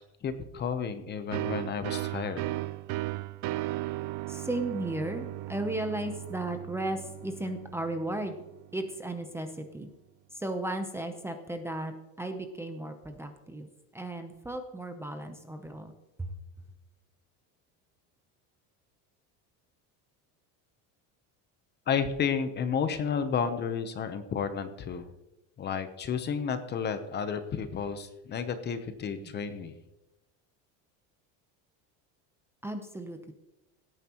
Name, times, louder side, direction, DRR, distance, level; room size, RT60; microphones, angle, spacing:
voice 1, 0.2-2.4 21.9-25.1 25.6-29.7, left 6 dB, 30° left, 10 dB, 0.8 m, -32 dB
sound 1, 1.3-8.8, right 18 dB, 55° right, 0.5 m, -36 dB
voice 2, 4.3-8.4 8.7-9.9 10.3-13.7 13.9-15.9 16.2-16.3 29.2-29.3 32.6-33.3, right 1 dB, 5° right, 6 dB, 0.7 m, -35 dB
17.5 x 9.1 x 3.0 m, 0.96 s
cardioid pair, 165°, 36 cm